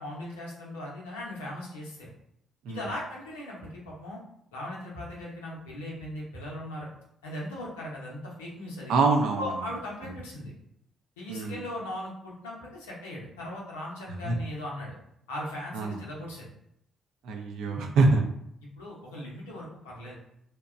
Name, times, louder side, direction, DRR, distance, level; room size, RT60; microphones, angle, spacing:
voice 1, 0.0-2.1 2.7-4.2 4.5-6.9 7.2-8.9 9.4-10.5 11.2-14.9 15.3-16.5 18.6-20.2, left 1 dB, 90° left, -4 dB, 0.6 m, -38 dB
voice 2, 8.9-9.4 11.3-11.6 14.2-14.3 15.7-16.0 17.2-18.2, right 3 dB, 75° right, 2 dB, 0.4 m, -24 dB
2.8 x 2.2 x 2.4 m, 0.75 s
hypercardioid pair, 45°, 0 cm